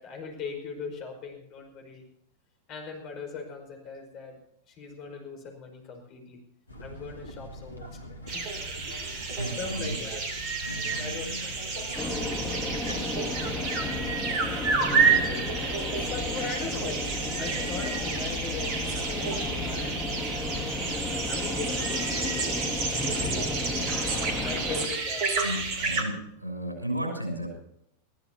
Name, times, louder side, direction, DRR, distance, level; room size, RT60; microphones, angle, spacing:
voice 1, 0.0-2.0 2.7-4.4 4.7-6.4 6.8-8.0 8.3-10.5 10.7-12.1 13.5-14.3 14.6-20.3 21.3-23.0 24.0-25.4, left 5 dB, 40° left, 3 dB, 5.1 m, -40 dB
sound 1, 6.7-21.6, equal, 80° left, 2.0 m, -44 dB
sound 2, 8.3-26.0, right 4 dB, 40° right, 3.2 m, -30 dB
voice 2, 9.1-10.0 10.6-11.4 12.9-13.1 14.9-15.3 25.4-27.5, equal, 85° right, 2 dB, 6.3 m, -35 dB
sound 3, 11.9-24.9, left 2 dB, 5° left, 4.6 m, -33 dB
22.5 x 14.5 x 2.9 m, 0.73 s
figure-of-eight pair, 90°, 0 cm